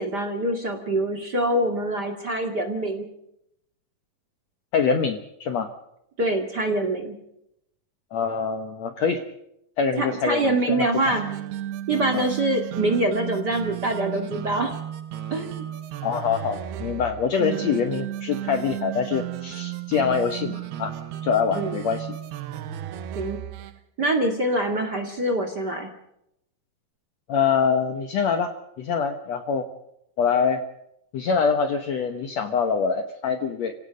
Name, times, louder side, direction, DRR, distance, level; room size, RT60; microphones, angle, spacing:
voice 1, 0.0-3.1 6.2-7.2 10.0-11.2 11.9-14.7 15.3-15.6 17.4-17.6 21.5-21.8 23.1-23.4 24.0-25.9, right 1 dB, 35° right, 5 dB, 2.1 m, -25 dB
voice 2, 4.7-5.7 8.1-9.2 9.8-11.1 12.1-12.3 16.0-20.9 21.2-22.1 27.3-29.7 30.2-30.6 31.1-33.7, left 6 dB, 65° left, 7 dB, 1.8 m, -25 dB
sound 1, 10.9-23.8, right 12 dB, 85° right, 3.0 m, -34 dB
29.5 x 17.5 x 5.1 m, 0.79 s
omnidirectional pair, 4.4 m